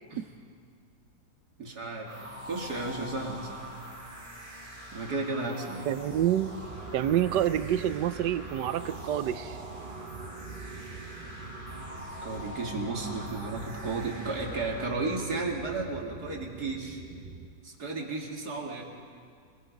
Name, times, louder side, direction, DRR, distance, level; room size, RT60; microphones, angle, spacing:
voice 1, 1.6-2.2 2.4-3.6 4.9-5.9 12.2-17.0 17.6-18.8, right 3 dB, 65° right, 0 dB, 2.9 m, -33 dB
sound 1, 2.1-14.9, equal, 20° right, 4.3 m, -44 dB
voice 2, 5.9-6.6 6.9-9.6, right 11 dB, 90° right, 14 dB, 1.3 m, -27 dB
sound 2, 6.1-17.5, right 4 dB, 35° right, 0.7 m, -44 dB
26.5 x 21.5 x 5.3 m, 2.2 s
omnidirectional pair, 1.8 m